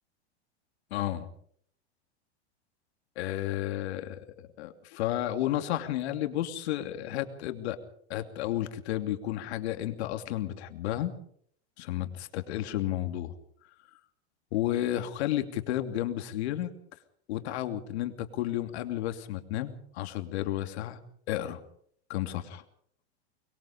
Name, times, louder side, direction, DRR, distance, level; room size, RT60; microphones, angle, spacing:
voice 1, 0.9-1.3 3.2-7.8 8.1-11.1 11.8-13.3 14.5-16.7 17.3-21.0 21.3-21.6 22.1-22.6, left 13 dB, 70° left, 7 dB, 2.9 m, -32 dB
23.5 x 22.5 x 5.1 m, 0.63 s
supercardioid pair, 130°, 33 cm